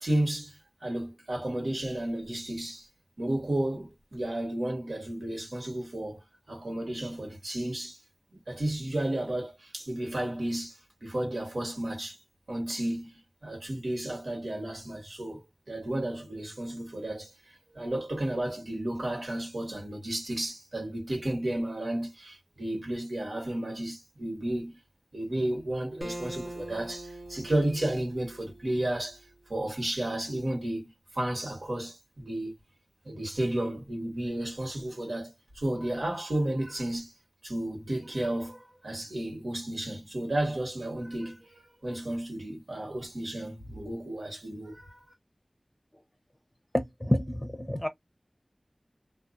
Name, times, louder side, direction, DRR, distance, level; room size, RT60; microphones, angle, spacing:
voice 1, 0.0-2.8 3.2-8.0 8.3-12.2 12.5-15.4 15.7-17.3 17.7-24.8 25.1-29.2 29.5-32.5 33.0-37.1 37.4-45.0, right 1 dB, 90° right, 1.4 m, -33 dB
Acoustic guitar, 26.0-29.4, right 1 dB, 25° right, 0.9 m, -42 dB
voice 2, 46.7-47.9, equal, 10° left, 0.6 m, -28 dB
2.5 x 2.3 x 2.5 m
wide cardioid pair, 50°, 0 cm